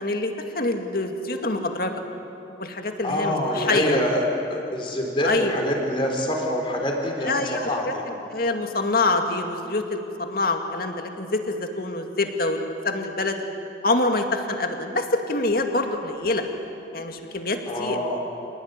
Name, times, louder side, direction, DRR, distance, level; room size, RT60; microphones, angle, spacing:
voice 1, 0.0-1.9 2.6-4.0 5.2-5.5 7.2-13.4 13.8-16.4 16.9-18.0, left 2 dB, 55° left, 4 dB, 2.2 m, -26 dB
voice 2, 3.0-4.2 4.5-8.0 17.7-18.2, equal, 30° left, 1 dB, 4.2 m, -26 dB
28.0 x 19.0 x 9.7 m, 2.9 s
head